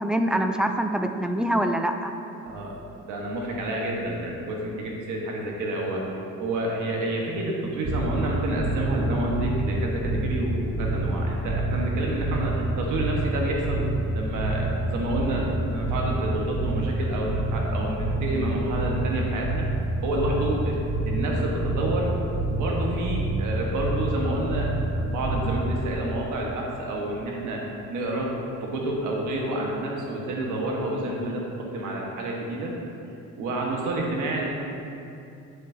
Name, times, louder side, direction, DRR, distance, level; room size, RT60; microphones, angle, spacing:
voice 1, 0.0-2.1, right 1 dB, 5° right, 6 dB, 0.5 m, -24 dB
voice 2, 3.0-6.0 6.4-13.9 14.1-19.7 20.0-20.8 21.0-22.1 22.5-28.3 28.6-32.7 33.4-34.5, right 1 dB, 85° right, -1 dB, 1.4 m, -29 dB
sound 1, 7.8-25.9, right 1 dB, 50° right, 1.8 m, -28 dB
8.3 x 7.9 x 2.8 m, 2.6 s
cardioid pair, 90°, 30 cm